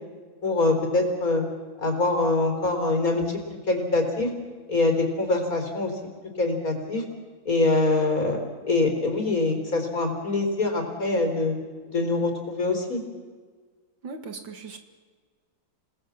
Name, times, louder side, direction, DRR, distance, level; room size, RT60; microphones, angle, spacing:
voice 1, 0.4-1.4 1.8-3.4 3.7-4.3 4.7-5.9 6.4-7.0 7.4-8.4 8.6-11.5 11.9-13.0, left 2 dB, 50° left, 4 dB, 4.4 m, -24 dB
voice 2, 14.0-14.8, right 4 dB, 90° right, 6 dB, 2.7 m, -38 dB
28.5 x 19.5 x 7.4 m, 1.5 s
omnidirectional pair, 2.0 m